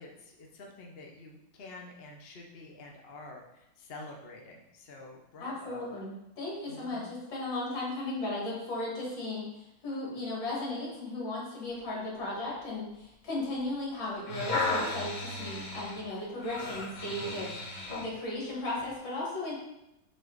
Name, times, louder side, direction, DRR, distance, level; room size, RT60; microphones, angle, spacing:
voice 1, 0.0-5.9 6.7-7.1, left 2 dB, 45° left, 0 dB, 0.8 m, -48 dB
voice 2, 5.4-19.5, left 2 dB, 65° left, -5 dB, 2.8 m, -36 dB
sound 1, 14.0-18.1 18.8-18.9, left 2 dB, 15° left, 2.0 m, -35 dB
8.0 x 4.0 x 4.0 m, 0.87 s
omnidirectional pair, 2.2 m